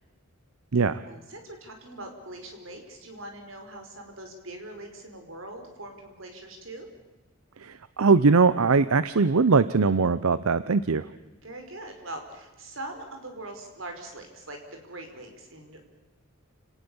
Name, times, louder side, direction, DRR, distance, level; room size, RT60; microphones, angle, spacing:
voice 1, 1.0-6.9 11.4-15.9, right 1 dB, 65° right, 4 dB, 4.8 m, -42 dB
voice 2, 7.6-11.1, right 4 dB, 85° right, 15 dB, 0.7 m, -21 dB
29.5 x 18.5 x 7.1 m, 1.1 s
head